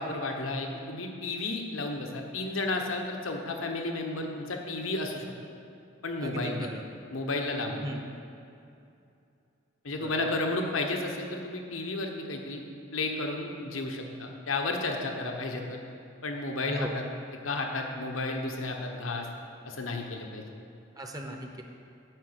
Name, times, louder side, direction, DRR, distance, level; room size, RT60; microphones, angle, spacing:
voice 1, 0.0-5.3 6.0-6.7 7.1-7.8 9.8-12.6 12.9-15.8 16.2-17.1 17.4-19.3 19.6-20.4, left 2 dB, 85° left, 2 dB, 1.1 m, -32 dB
voice 2, 6.2-6.8 7.8-8.0 9.9-10.3 16.7-17.0 21.0-21.6, right 1 dB, 20° right, 2 dB, 0.7 m, -37 dB
9.3 x 5.9 x 8.1 m, 2.6 s
head